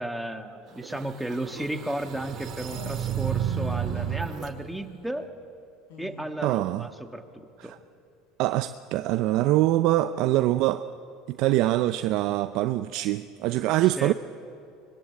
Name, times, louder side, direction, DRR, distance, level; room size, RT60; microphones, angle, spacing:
voice 1, 0.0-5.3 6.0-7.8 14.0-14.1, right 1 dB, 5° right, 1.8 m, -34 dB
sound 1, 0.8-4.5, right 9 dB, 45° right, 2.3 m, -32 dB
sound 2, 2.7-3.1 3.9-4.2 5.9-6.3, left 3 dB, 80° left, 5.4 m, -43 dB
voice 2, 6.4-6.9 7.6-7.8 8.4-10.9 11.3-14.1, right 15 dB, 65° right, 0.6 m, -24 dB
24.5 x 21.5 x 8.5 m
supercardioid pair, 105°, 0 cm